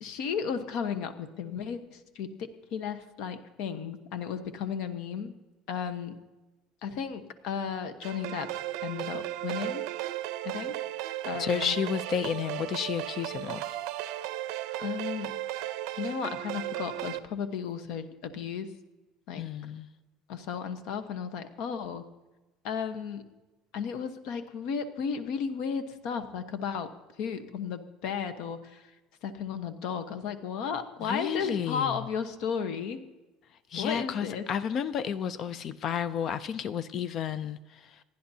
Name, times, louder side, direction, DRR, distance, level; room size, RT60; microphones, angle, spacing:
voice 1, 0.0-5.3 5.7-6.2 6.8-8.5 8.8-9.8 10.4-10.7 11.2-11.7 14.8-15.3 15.9-18.7 19.3-19.4 20.3-22.0 22.6-23.3 23.7-26.9 27.2-28.9 29.2-33.0 33.8-34.4, left 7 dB, 60° left, 1.0 m, -34 dB
sound 1, 8.0-17.2, right 14 dB, 65° right, 0.7 m, -35 dB
voice 2, 11.4-13.8 19.3-19.9 31.0-32.0 33.7-38.0, left 8 dB, 35° left, 0.4 m, -32 dB
27.5 x 10.5 x 2.8 m
cardioid pair, 170°, 0 cm